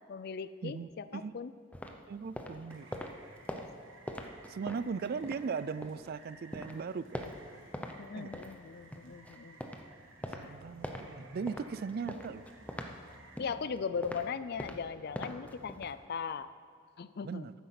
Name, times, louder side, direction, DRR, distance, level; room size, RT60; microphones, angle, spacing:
voice 1, 0.1-1.5 8.0-9.6 10.4-10.5 13.4-16.5 17.0-17.5, left 6 dB, 50° left, 14 dB, 0.4 m, -38 dB
voice 2, 0.6-1.3 2.1-3.1 4.5-7.3 8.2-8.3 10.4-12.4 17.2-17.5, right 5 dB, 50° right, 16 dB, 0.3 m, -38 dB
sound 1, 1.7-6.1 6.4-8.0 8.2-16.0, equal, 5° left, 0.7 m, -44 dB
Rain, 2.7-13.4, right 3 dB, 65° right, 1.4 m, -58 dB
11.5 x 9.3 x 5.9 m, 2.2 s
head